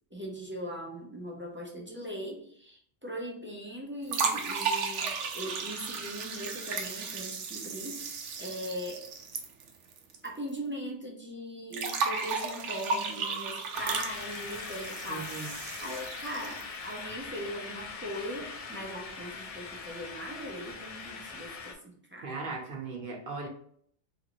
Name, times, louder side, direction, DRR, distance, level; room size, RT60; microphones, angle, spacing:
voice 1, 0.1-9.1 10.2-22.3, equal, 15° right, -2 dB, 0.4 m, -40 dB
sound 1, 4.1-10.3 10.5-10.6 11.7-16.8, right 5 dB, 85° right, 0.9 m, -34 dB
sound 2, 13.7-21.7, left 4 dB, 60° left, 0.4 m, -41 dB
voice 2, 15.1-15.5 22.2-23.5, right 4 dB, 55° right, 0 dB, 0.8 m, -37 dB
3.0 x 2.6 x 3.0 m, 0.63 s
omnidirectional pair, 1.2 m